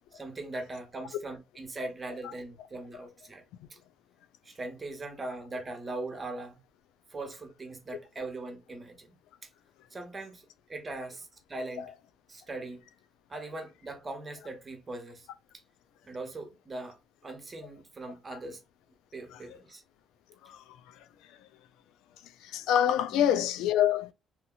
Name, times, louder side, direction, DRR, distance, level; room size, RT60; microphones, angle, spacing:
voice 1, 0.1-3.4 3.7-3.8 4.4-6.6 7.1-9.2 9.9-10.4 10.7-11.9 12.3-12.8 13.3-15.3 16.0-17.0 17.2-18.6 19.1-19.8 23.1-23.3, right 2 dB, 30° right, 1.1 m, -40 dB
voice 2, 20.4-21.0 22.4-24.1, left 10 dB, 85° left, 0.3 m, -27 dB
2.8 x 2.7 x 2.3 m
supercardioid pair, 70°, 0 cm